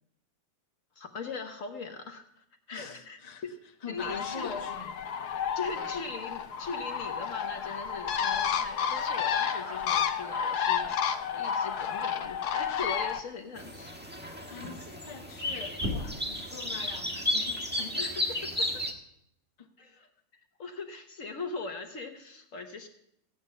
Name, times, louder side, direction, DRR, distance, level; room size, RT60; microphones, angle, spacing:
voice 1, 1.0-3.5 3.9-4.9 5.5-11.0 11.3-13.9 14.2-14.4 18.0-18.8 19.8-20.1 20.6-22.9, left 4 dB, 55° left, 1.4 m, -40 dB
voice 2, 2.7-3.4 3.8-5.0 5.7-5.9 14.5-18.1 19.6-19.7, left 5 dB, 25° left, 1.2 m, -43 dB
Bird, 4.0-13.2, left 8 dB, 75° left, 1.4 m, -31 dB
sound 1, 8.9-16.0, left 1 dB, 40° right, 3.0 m, -44 dB
sound 2, 13.6-18.9, left 1 dB, 5° right, 1.3 m, -33 dB
15.5 x 9.5 x 5.6 m
omnidirectional pair, 1.7 m